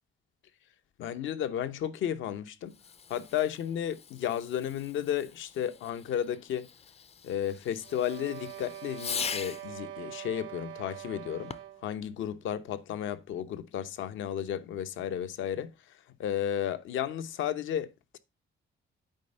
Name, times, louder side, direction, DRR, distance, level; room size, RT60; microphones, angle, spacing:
voice 1, 1.0-2.7 3.1-6.7 7.2-11.5 11.8-15.7 16.2-18.2, left 10 dB, 75° left, 0.8 m, -33 dB
Fireworks, 2.7-9.8 11.4-11.9, left 6 dB, 30° left, 0.4 m, -42 dB
sound 1, 7.8-12.0, right 12 dB, 80° right, 0.8 m, -44 dB
9.1 x 4.3 x 5.3 m
cardioid pair, 90°, 20 cm